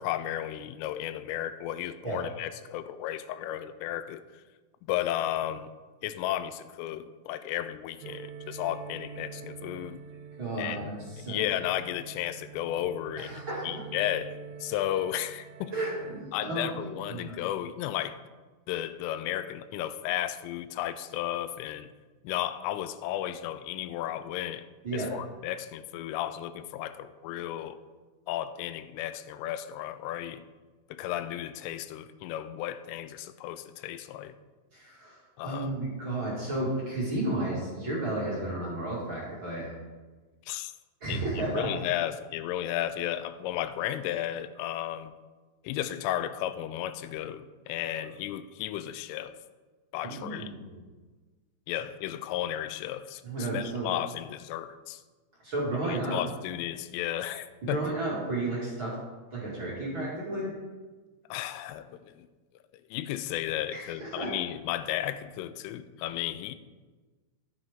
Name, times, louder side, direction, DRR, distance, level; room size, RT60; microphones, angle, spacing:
voice 1, 0.0-4.2 4.9-5.7 6.0-10.0 10.6-15.7 16.3-18.2 18.7-21.9 22.2-24.7 24.9-27.8 28.3-30.4 30.9-34.3 35.4-35.7 40.5-40.7 41.1-45.1 45.6-49.4 49.9-50.5 51.7-55.0 55.8-57.8 61.3-62.3 62.9-66.6, left 12 dB, 85° left, 12 dB, 3.1 m, -34 dB
sound 1, 8.0-16.2, right 6 dB, 85° right, 3.2 m, -45 dB
voice 2, 10.4-11.4 13.2-13.7 15.7-17.4 24.8-25.1 34.7-35.2 35.4-39.7 41.0-41.7 50.0-50.8 53.2-53.9 55.4-56.2 57.6-58.9 59.3-60.5 63.7-64.3, right 2 dB, 40° right, -6 dB, 1.8 m, -33 dB
13.0 x 8.8 x 3.7 m, 1.3 s
omnidirectional pair, 5.7 m